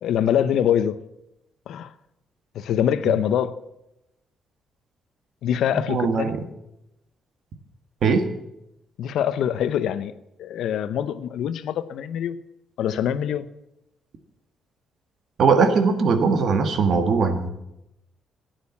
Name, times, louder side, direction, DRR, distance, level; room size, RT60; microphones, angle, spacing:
voice 1, 0.0-1.0 1.7-1.9 2.5-3.5 5.4-6.3 9.0-10.1 10.4-12.4 12.8-13.5, left 9 dB, 75° left, 14 dB, 0.7 m, -24 dB
voice 2, 5.9-6.4 8.0-8.3 15.4-17.5, right 5 dB, 60° right, 8 dB, 1.7 m, -20 dB
11.5 x 9.2 x 8.5 m, 0.88 s
cardioid pair, 90°, 0 cm